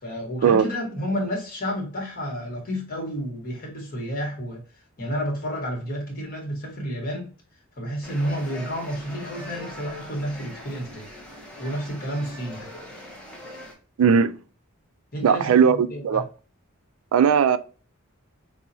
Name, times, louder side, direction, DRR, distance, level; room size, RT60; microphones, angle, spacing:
voice 1, 0.0-4.6 5.0-7.3 7.8-11.1 11.6-12.7 15.1-16.3, equal, 45° left, 1.3 m, -30 dB
sound 1, 8.0-13.7, left 1 dB, 5° left, 0.8 m, -41 dB
voice 2, 14.0-14.3 15.2-16.2 17.1-17.6, right 7 dB, 70° right, 0.3 m, -18 dB
5.3 x 2.1 x 2.7 m
head